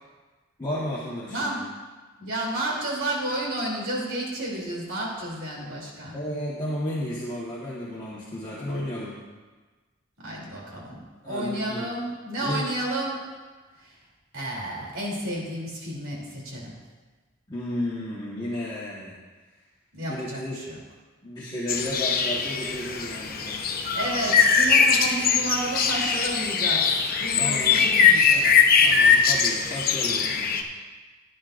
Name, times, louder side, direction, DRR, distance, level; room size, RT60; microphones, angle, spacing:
voice 1, 0.6-1.5 6.1-9.2 11.2-11.9 12.4-12.6 17.5-19.1 20.0-20.6 21.2-23.6 27.3-27.9 28.8-30.5, left 1 dB, 20° left, -7 dB, 1.5 m, -32 dB
voice 2, 1.3-1.7 2.2-6.2 10.2-13.2 13.8-14.0 14.3-16.7 19.9-20.8 23.9-26.9 27.2-28.5, right 1 dB, 75° right, -3 dB, 3.3 m, -31 dB
sound 1, 21.7-30.6, left 6 dB, 45° left, 0.9 m, -21 dB
16.0 x 10.0 x 2.6 m, 1.3 s
head